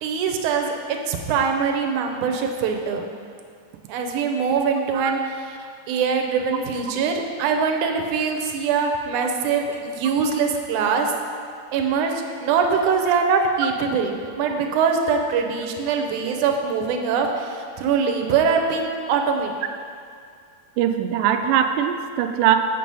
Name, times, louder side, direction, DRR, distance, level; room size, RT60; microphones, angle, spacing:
voice 1, 0.0-3.1 3.9-5.2 5.6-11.1 11.7-19.5, right 5 dB, 75° right, 3 dB, 2.1 m, -23 dB
voice 2, 20.8-22.6, right 10 dB, 90° right, 7 dB, 2.2 m, -21 dB
7.7 x 7.6 x 5.4 m, 2.2 s
omnidirectional pair, 3.8 m